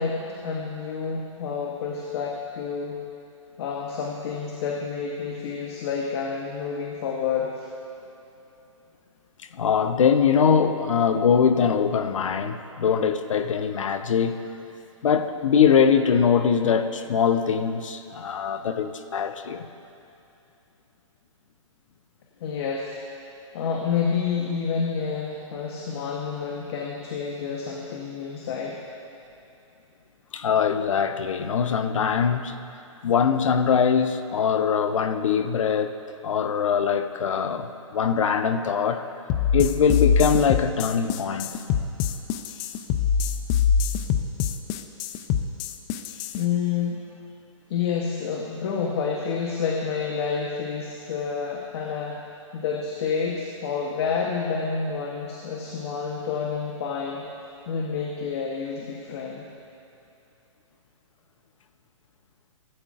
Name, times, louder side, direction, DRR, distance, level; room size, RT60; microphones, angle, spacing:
voice 1, 0.0-3.0 3.6-7.6 22.4-23.0 23.5-28.8 46.3-47.0 47.7-52.2 52.5-57.3 57.7-59.4, left 6 dB, 50° left, 0 dB, 1.0 m, -29 dB
voice 2, 9.5-14.4 15.0-19.7 30.3-32.6 33.0-36.0 36.2-39.0 39.5-41.5, left 7 dB, 75° left, 9 dB, 0.7 m, -22 dB
sound 1, 39.3-46.4, left 7 dB, 30° left, 0.5 m, -24 dB
16.0 x 8.6 x 2.5 m, 2.8 s
hypercardioid pair, 130°, 17 cm